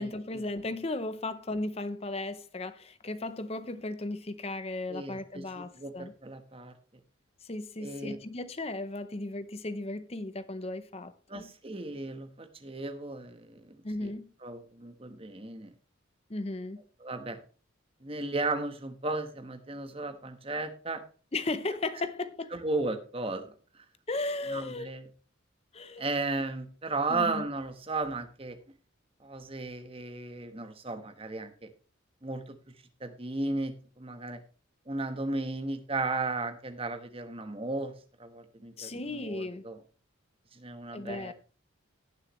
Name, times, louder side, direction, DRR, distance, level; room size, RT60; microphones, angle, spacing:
voice 1, 0.0-6.1 7.4-11.5 13.8-14.3 16.3-16.8 21.3-22.6 24.1-24.9 25.7-26.0 27.1-27.5 38.8-39.7 40.9-41.3, left 2 dB, 30° left, 0.7 m, -36 dB
voice 2, 4.9-6.7 7.8-8.2 11.3-14.1 14.4-15.7 17.0-17.4 18.0-21.0 22.5-23.5 24.5-25.1 26.0-28.6 29.2-31.7 32.2-32.6 33.0-34.4 34.9-37.9 38.2-39.8 40.5-41.3, right 2 dB, 30° right, 1.2 m, -35 dB
17.5 x 6.5 x 3.2 m
head